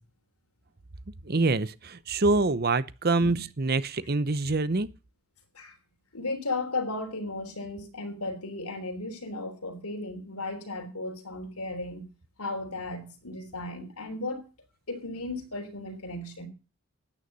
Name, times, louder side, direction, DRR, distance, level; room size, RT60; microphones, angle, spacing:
voice 1, 1.2-4.9, right 3 dB, 45° right, 0.7 m, -25 dB
voice 2, 6.1-12.0 12.4-14.5 14.9-16.5, left 2 dB, 90° left, 3.4 m, -35 dB
13.0 x 9.6 x 5.4 m
head